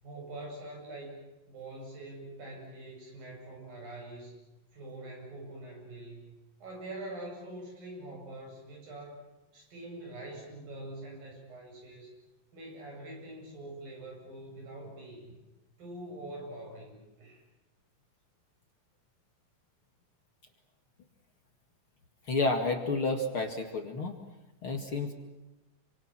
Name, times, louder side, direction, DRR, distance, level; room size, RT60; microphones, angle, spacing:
voice 1, 0.0-4.4 4.7-9.2 9.5-12.1 12.5-15.4 15.8-17.4, right 1 dB, 75° right, 0 dB, 9.8 m, -44 dB
voice 2, 22.3-24.2 24.6-25.1, left 3 dB, 40° left, 5 dB, 2.6 m, -30 dB
28.5 x 25.0 x 7.5 m, 1.0 s
omnidirectional pair, 4.1 m